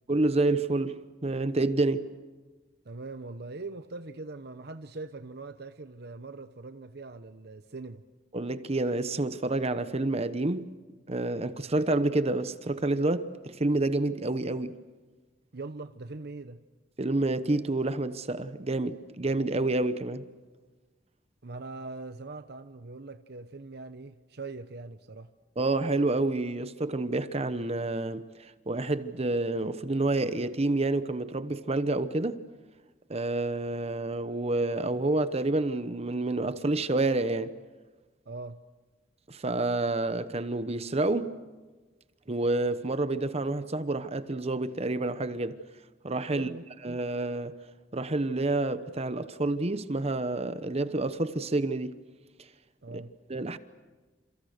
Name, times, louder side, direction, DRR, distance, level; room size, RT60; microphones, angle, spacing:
voice 1, 0.1-2.1 8.3-10.7 11.1-14.8 17.0-20.3 25.6-32.4 33.1-37.6 39.3-41.4 42.3-45.6 46.0-46.5 46.8-47.6 47.9-52.0 52.9-53.0 53.3-53.6, right 2 dB, 35° right, 1.0 m, -28 dB
voice 2, 2.8-8.0 15.5-16.6 21.4-25.3 38.3-38.6 46.3-46.6 52.8-53.1, right 3 dB, 60° right, 0.9 m, -41 dB
29.5 x 27.5 x 6.6 m
head